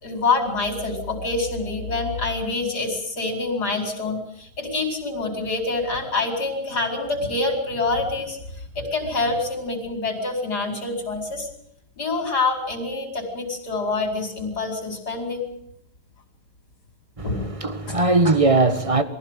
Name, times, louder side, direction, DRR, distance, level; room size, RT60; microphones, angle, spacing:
voice 1, 0.0-11.5 12.0-15.5 17.2-17.5 17.9-18.0, left 3 dB, 70° left, 5.1 m, -26 dB
voice 2, 17.2-19.0, right 3 dB, 20° right, 1.6 m, -20 dB
23.0 x 16.0 x 8.9 m
omnidirectional pair, 1.8 m